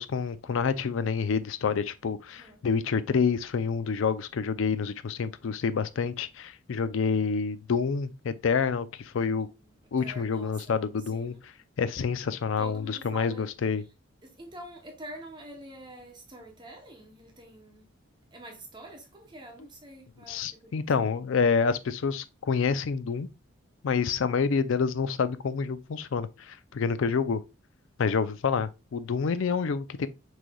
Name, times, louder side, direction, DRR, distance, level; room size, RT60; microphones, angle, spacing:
voice 1, 0.0-9.5 9.9-11.5 11.8-13.8 20.3-23.3 23.8-27.4 28.0-30.1, left 5 dB, 75° left, 0.4 m, -28 dB
voice 2, 10.0-10.7 11.1-11.4 12.6-13.5 14.2-17.9 18.3-20.9, right 1 dB, 20° right, 0.8 m, -46 dB
6.1 x 3.3 x 2.2 m
head